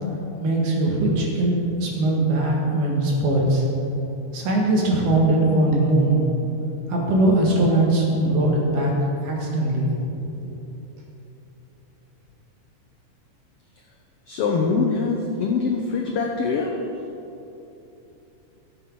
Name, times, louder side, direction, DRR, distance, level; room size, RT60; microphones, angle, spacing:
voice 1, 0.4-3.6 4.3-6.2 6.9-8.9 9.2-10.0, right 2 dB, 75° right, -2 dB, 3.2 m, -20 dB
voice 2, 14.3-16.9, left 4 dB, 85° left, 1 dB, 1.3 m, -23 dB
14.0 x 7.9 x 4.6 m, 2.9 s
omnidirectional pair, 3.6 m